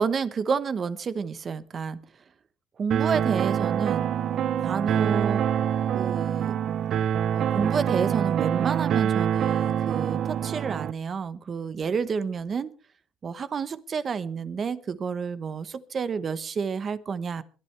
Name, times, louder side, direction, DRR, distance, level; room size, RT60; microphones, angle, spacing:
voice 1, 0.0-2.0 2.8-4.1 4.6-5.4 5.9-6.6 7.3-12.7 13.2-17.4, right 6 dB, 40° right, 14 dB, 1.1 m, -29 dB
sound 1, 2.9-10.9, right 9 dB, 55° right, 0.6 m, -25 dB
22.5 x 11.0 x 3.4 m, 0.36 s
cardioid pair, 110°, 0 cm